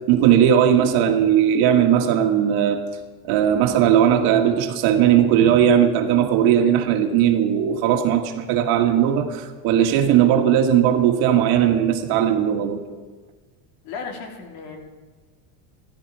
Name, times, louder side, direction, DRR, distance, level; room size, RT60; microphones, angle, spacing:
voice 1, 0.0-2.8 3.2-12.8, right 9 dB, 60° right, 1.7 m, -18 dB
voice 2, 13.8-14.9, left 5 dB, 65° left, 2.7 m, -35 dB
15.0 x 14.0 x 4.8 m
cardioid pair, 150°, 41 cm